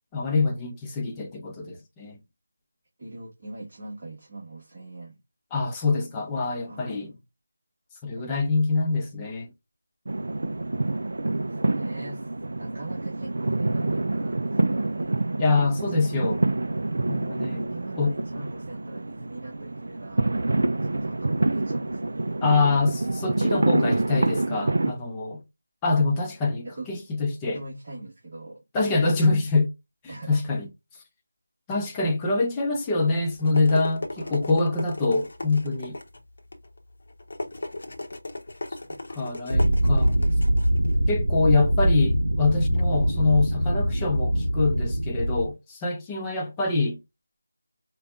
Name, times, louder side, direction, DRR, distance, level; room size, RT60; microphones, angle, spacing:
voice 1, 0.1-2.2 5.5-7.1 8.0-9.5 15.4-16.4 17.1-17.7 18.0-18.1 22.4-25.4 25.8-27.6 28.7-29.7 30.3-30.7 31.7-36.0 39.2-40.1 41.1-47.0, left 3 dB, 10° left, 0.6 m, -25 dB
voice 2, 3.0-5.2 6.7-7.1 8.2-8.3 11.5-15.3 17.7-22.2 26.7-26.9 27.5-28.6 30.1-30.5 34.2-34.9 38.9-39.2, right 2 dB, 35° right, 1.2 m, -41 dB
sound 1, 10.0-24.9, right 2 dB, 55° right, 0.3 m, -27 dB
sound 2, 33.1-41.9, left 2 dB, 45° left, 0.8 m, -37 dB
sound 3, 39.5-45.5, equal, 70° right, 0.7 m, -23 dB
4.9 x 2.2 x 2.4 m
figure-of-eight pair, 165°, 0 cm